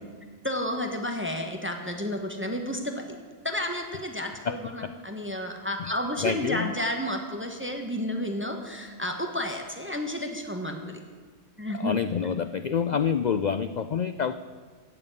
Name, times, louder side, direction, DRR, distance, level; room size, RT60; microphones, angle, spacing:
voice 1, 0.4-3.2 3.4-11.0 11.6-12.0, left 1 dB, 10° right, 4 dB, 1.3 m, -31 dB
voice 2, 4.4-4.9 6.2-6.7 11.7-14.4, left 7 dB, 85° left, 11 dB, 0.3 m, -27 dB
15.5 x 7.1 x 9.8 m, 1.5 s
omnidirectional pair, 1.4 m